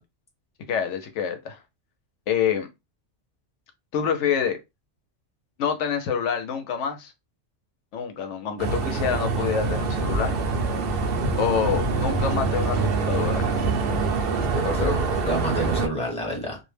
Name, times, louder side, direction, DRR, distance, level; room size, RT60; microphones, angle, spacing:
voice 1, 0.7-1.6 2.3-2.7 3.9-4.6 5.6-7.1 7.9-10.4 11.4-13.5, left 7 dB, 80° left, 0.9 m, -26 dB
sound 1, 8.6-15.9, right 4 dB, 60° right, 0.7 m, -25 dB
voice 2, 14.5-16.6, equal, 5° left, 0.8 m, -28 dB
2.4 x 2.1 x 3.1 m
omnidirectional pair, 1.2 m